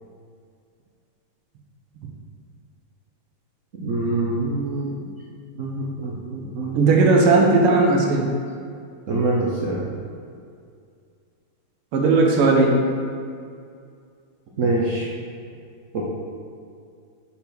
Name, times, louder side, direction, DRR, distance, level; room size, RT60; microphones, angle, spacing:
voice 1, 3.8-5.1 5.6-6.9 9.1-9.9 14.6-15.1 15.9-16.1, right 2 dB, 70° right, -4 dB, 0.7 m, -25 dB
voice 2, 6.7-8.3 11.9-12.8, right 3 dB, 90° right, 1 dB, 1.7 m, -16 dB
5.8 x 4.3 x 5.8 m, 2.3 s
omnidirectional pair, 2.4 m